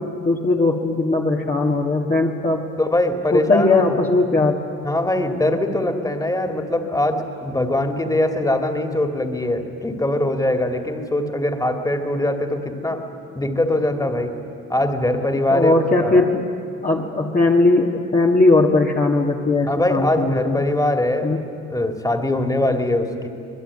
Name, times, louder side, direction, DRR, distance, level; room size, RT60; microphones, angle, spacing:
voice 1, 0.0-2.7 3.3-4.6 15.5-16.4 16.8-20.6 21.2-21.4, left 2 dB, 25° left, -2 dB, 1.9 m, -19 dB
voice 2, 2.8-4.4 4.8-13.0 13.3-14.3 14.7-16.3 19.7-21.3 21.7-23.3, left 1 dB, 10° left, 5 dB, 2.6 m, -22 dB
26.0 x 20.5 x 9.9 m, 2.5 s
cardioid pair, 90°, 30 cm